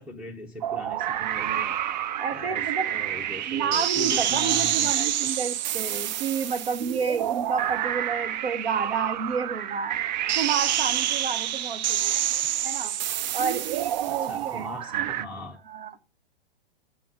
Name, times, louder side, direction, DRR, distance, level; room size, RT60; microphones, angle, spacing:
voice 1, 0.0-1.7 2.3-5.3 14.1-15.6, left 1 dB, 5° right, 0.6 m, -39 dB
sound 1, 0.6-15.2, right 11 dB, 45° right, 0.4 m, -28 dB
voice 2, 2.1-2.9 3.5-10.0 10.3-12.2 12.6-12.9 13.3-15.1 15.6-16.1, right 6 dB, 70° right, 1.0 m, -30 dB
8.6 x 6.8 x 3.5 m
figure-of-eight pair, 115°, 31 cm